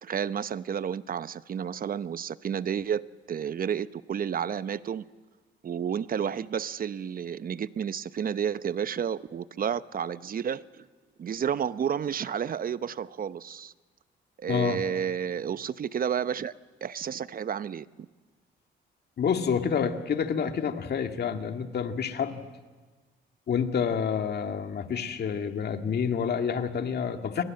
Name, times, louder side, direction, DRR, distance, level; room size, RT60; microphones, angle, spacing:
voice 1, 0.0-3.0 3.3-5.0 5.6-10.9 11.2-13.7 14.4-16.5 16.8-17.9, right 8 dB, 45° right, 15 dB, 0.8 m, -31 dB
voice 2, 14.5-14.8 19.2-22.4 23.5-27.4, left 7 dB, 55° left, 6 dB, 2.1 m, -28 dB
29.0 x 21.5 x 7.8 m, 1.3 s
cardioid pair, 90°, 20 cm